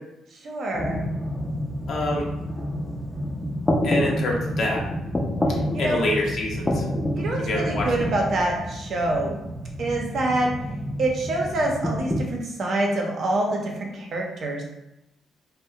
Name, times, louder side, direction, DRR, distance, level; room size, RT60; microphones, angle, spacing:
voice 1, 0.4-1.0 5.7-6.0 7.2-9.4 9.8-10.5 11.0-14.6, right 2 dB, 60° right, 0 dB, 0.6 m, -26 dB
sound 1, 0.7-12.2, equal, 15° left, 0.4 m, -28 dB
voice 2, 1.9-2.3 3.8-4.8 5.8-6.8 7.4-7.9, left 1 dB, 65° left, -1 dB, 0.6 m, -26 dB
2.3 x 2.1 x 2.7 m, 0.90 s
cardioid pair, 90°, 0 cm